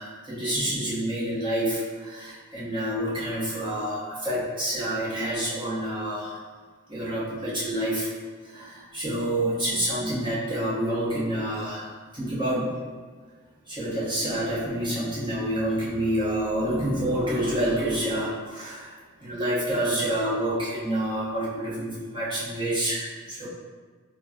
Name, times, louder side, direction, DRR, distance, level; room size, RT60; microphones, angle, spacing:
voice 1, 0.0-6.4 6.9-8.1 8.4-12.7 13.7-18.9 19.2-23.5, right 1 dB, 20° right, -8 dB, 1.0 m, -28 dB
5.7 x 2.3 x 2.4 m, 1.5 s
head